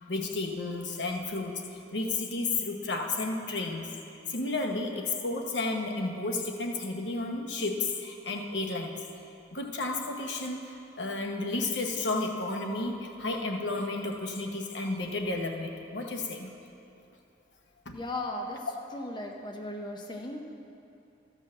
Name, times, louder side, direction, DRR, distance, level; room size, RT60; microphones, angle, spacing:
voice 1, 0.0-3.9 4.3-9.0 9.5-16.5 17.9-18.0, left 2 dB, 75° left, 2 dB, 1.1 m, -32 dB
voice 2, 17.9-20.4, left 1 dB, 25° left, 1 dB, 0.7 m, -37 dB
14.0 x 5.4 x 7.6 m, 2.7 s
head